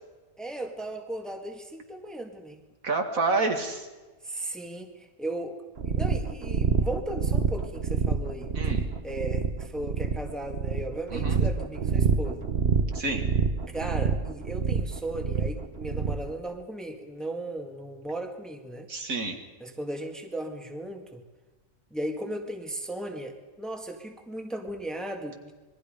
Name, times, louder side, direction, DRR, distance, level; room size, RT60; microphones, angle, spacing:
voice 1, 0.4-2.6 4.2-5.6 5.9-12.5 13.7-18.9 19.6-21.2 21.9-25.5, right 1 dB, ahead, 3 dB, 1.9 m, -36 dB
voice 2, 2.8-3.9 8.6-8.9 11.1-11.4 12.9-13.2 18.9-19.4, right 3 dB, 65° right, 4 dB, 2.4 m, -28 dB
sound 1, 5.8-16.3, right 5 dB, 45° right, 1.4 m, -27 dB
27.0 x 21.5 x 5.2 m, 1.2 s
omnidirectional pair, 1.5 m